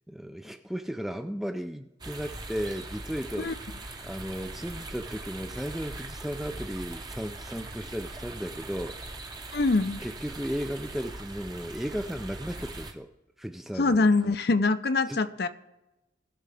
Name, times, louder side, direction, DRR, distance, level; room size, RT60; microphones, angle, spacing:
voice 1, 0.1-3.5 4.0-9.0 10.0-13.1 13.4-14.1 15.1-15.3, equal, ahead, 8 dB, 0.4 m, -35 dB
sound 1, 2.0-12.9, right 2 dB, 20° right, 0.8 m, -41 dB
voice 2, 9.5-10.0 13.8-15.5, left 3 dB, 55° left, 12 dB, 0.6 m, -24 dB
19.5 x 6.5 x 3.4 m, 0.98 s
head